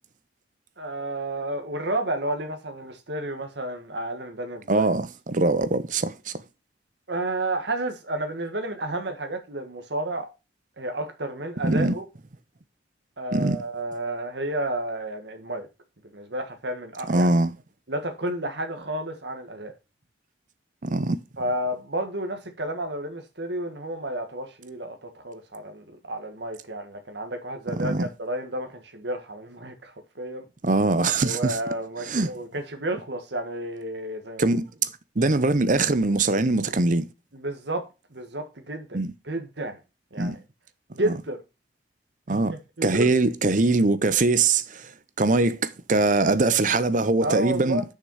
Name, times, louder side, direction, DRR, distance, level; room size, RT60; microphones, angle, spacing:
voice 1, 0.8-4.9 7.1-10.3 10.8-12.0 13.2-15.7 16.1-17.3 17.9-19.7 21.4-30.4 31.2-34.5 37.3-39.0 39.2-39.8 40.1-40.4 40.9-41.4 42.3-43.1 47.2-47.8, right 1 dB, 70° right, 1.6 m, -31 dB
voice 2, 4.7-6.3 11.6-11.9 13.3-13.6 17.1-17.5 20.8-21.2 27.8-28.1 30.6-31.6 32.0-32.3 34.4-34.7 35.2-37.1 38.9-39.1 40.2-40.4 41.0-41.1 42.3-42.5 42.8-44.9 45.2-47.8, right 3 dB, 45° right, 0.7 m, -22 dB
6.7 x 6.0 x 5.5 m
head